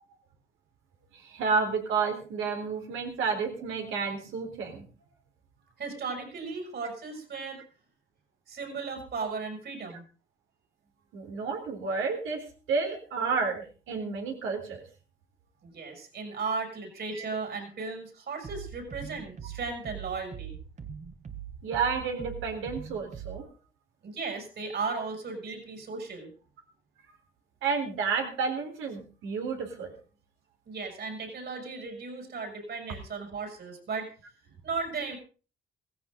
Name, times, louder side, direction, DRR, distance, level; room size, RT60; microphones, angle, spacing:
voice 1, 1.1-4.8 11.1-12.4 12.7-14.8 17.1-17.3 21.6-23.4 27.6-29.9, right 5 dB, 90° right, 3 dB, 4.0 m, -31 dB
voice 2, 5.8-7.6 8.5-10.0 15.6-20.6 24.0-26.3 30.7-34.1 34.6-35.2, right 4 dB, 60° right, 4 dB, 7.1 m, -36 dB
sound 1, 18.4-23.4, right 8 dB, 35° right, 1.8 m, -42 dB
16.0 x 16.0 x 3.9 m, 0.37 s
cardioid pair, 90°, 20 cm